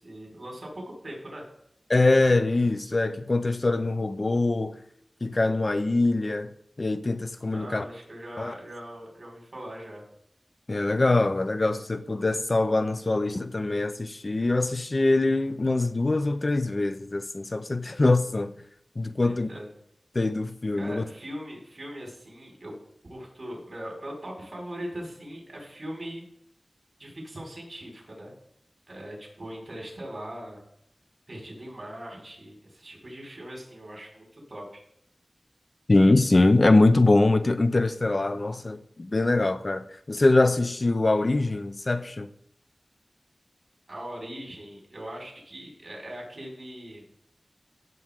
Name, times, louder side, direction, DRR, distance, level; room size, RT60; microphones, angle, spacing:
voice 1, 0.0-1.4 7.5-10.0 19.2-19.7 20.7-22.7 23.1-26.2 27.0-28.3 28.9-30.6 31.3-34.8 43.9-47.0, equal, 55° right, 5.0 m, -40 dB
voice 2, 1.9-4.8 5.2-6.5 6.8-7.8 8.4-8.5 10.7-18.5 19.0-19.5 20.1-21.0 35.9-42.3, left 2 dB, 50° left, 0.7 m, -23 dB
15.5 x 7.6 x 3.7 m
wide cardioid pair, 55°, 0 cm